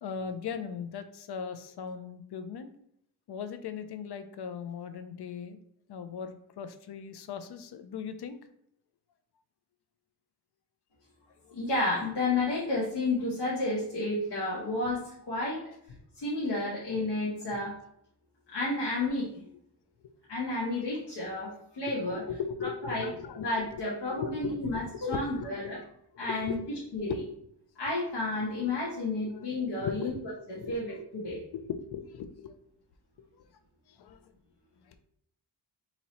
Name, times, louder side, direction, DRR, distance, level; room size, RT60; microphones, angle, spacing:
voice 1, 0.0-2.7 3.3-5.6 5.9-8.4 11.5-11.6 22.3-23.5 23.7-25.8 26.2-26.6 27.0-27.2 28.6-28.7 29.3-29.5 29.8-30.2 30.5-30.8 31.5-32.5 34.0-34.2 34.8-35.0, left 7 dB, 70° left, 9 dB, 0.5 m, -38 dB
voice 2, 11.5-15.6 16.2-17.8 18.5-19.3 20.3-22.2 22.8-25.8 26.2-27.2 27.8-30.1 30.5-31.4, left 2 dB, 90° left, -7 dB, 1.1 m, -31 dB
2.9 x 2.8 x 4.1 m, 0.72 s
wide cardioid pair, 80°, 42 cm